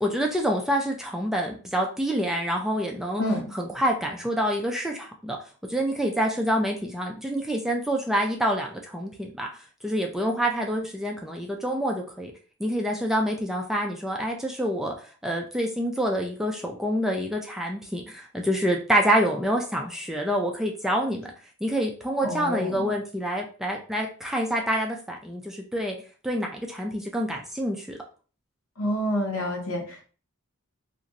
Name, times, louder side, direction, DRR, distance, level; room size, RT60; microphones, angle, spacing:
voice 1, 0.0-3.2 3.5-5.4 5.7-9.5 9.8-12.3 12.6-14.9 15.2-21.3 21.6-26.0 26.2-28.0, equal, ahead, 0 dB, 0.3 m, -27 dB
voice 2, 3.2-3.5 22.2-22.9 28.8-30.1, equal, 70° left, 0 dB, 1.0 m, -28 dB
2.9 x 2.5 x 2.5 m, 0.39 s
head